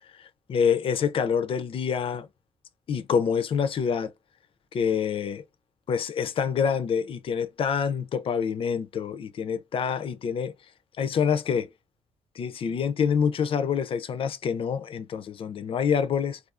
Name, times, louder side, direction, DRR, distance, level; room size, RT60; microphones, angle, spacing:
voice 1, 0.2-2.3 2.9-4.1 4.7-5.4 5.9-10.5 11.0-11.7 12.4-16.4, left 7 dB, 50° left, 0.4 m, -26 dB
2.4 x 2.3 x 2.3 m
cardioid pair, 105°, 12 cm